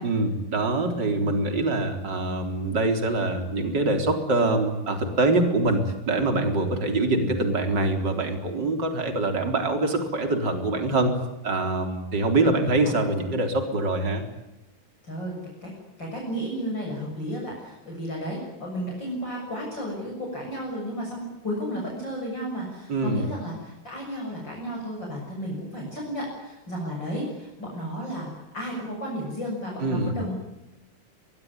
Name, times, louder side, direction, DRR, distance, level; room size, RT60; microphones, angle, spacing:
voice 1, 0.0-11.2 11.4-14.2 22.9-23.3 29.8-30.1, right 2 dB, 35° right, 5 dB, 4.2 m, -24 dB
voice 2, 12.6-12.9 15.0-15.3 15.6-15.7 16.0-30.4, equal, 35° left, -2 dB, 7.7 m, -33 dB
23.5 x 21.5 x 9.7 m, 0.98 s
omnidirectional pair, 3.6 m